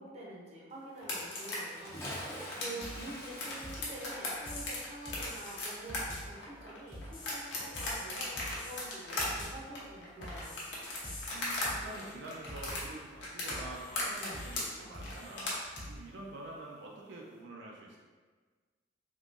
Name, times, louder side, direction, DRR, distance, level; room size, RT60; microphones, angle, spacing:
voice 1, 0.0-10.6, right 1 dB, 35° right, -4 dB, 0.7 m, -47 dB
sound 1, 1.0-11.7 11.9-15.8, left 2 dB, 70° left, 0.9 m, -38 dB
Bathtub (filling or washing) / Splash splatter, 1.7-6.6 6.9-7.0, equal, 15° left, 0.6 m, -46 dB
voice 2, 2.5-3.2 11.3-18.0, right 2 dB, 75° right, -2 dB, 0.4 m, -47 dB
sound 2, 2.8-3.1 3.6-4.8 5.1-5.6 5.9-6.4 6.9-8.1 8.4-8.9 9.2-9.7 10.2-11.3 11.6-12.1 12.5-13.0 13.5-14.6 14.9-15.4 15.8-16.0, left 1 dB, 85° left, 1.2 m, -45 dB
3.7 x 2.8 x 2.5 m, 1.5 s
head